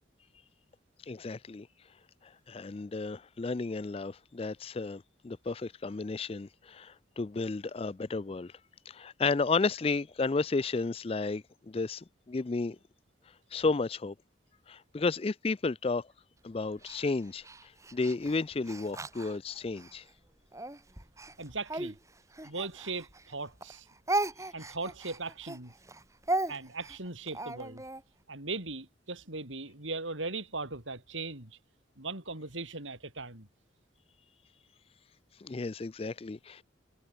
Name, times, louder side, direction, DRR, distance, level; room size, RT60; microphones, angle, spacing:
voice 1, 1.1-1.7 2.2-8.5 8.9-12.8 13.5-14.1 14.7-16.1 16.4-17.4 17.9-20.0 35.4-36.6, left 3 dB, 30° left, 0.4 m, -32 dB
Speech, 16.8-20.0 20.5-23.3 23.6-28.0, right 2 dB, 15° right, 2.8 m, -36 dB
voice 2, 21.4-22.0 22.4-23.9 24.5-25.7 26.5-27.8 28.3-31.6 32.0-33.5, right 3 dB, 90° right, 5.6 m, -38 dB
head